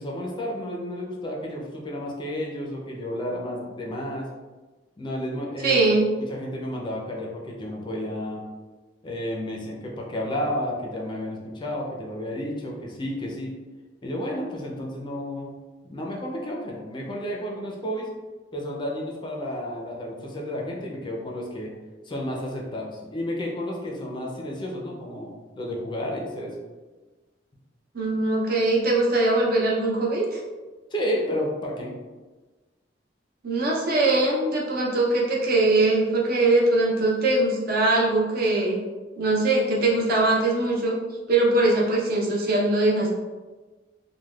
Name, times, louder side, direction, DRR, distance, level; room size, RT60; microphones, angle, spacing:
voice 1, 0.0-4.3 5.0-8.4 9.0-13.5 14.0-15.5 15.8-18.1 18.5-21.7 22.1-26.5 30.9-31.9, equal, 25° left, -2 dB, 0.4 m, -31 dB
voice 2, 5.6-6.1 27.9-30.4 33.4-38.8 39.2-41.0 41.3-43.1, right 2 dB, 55° right, -3 dB, 0.6 m, -21 dB
3.2 x 2.2 x 2.3 m, 1.3 s
head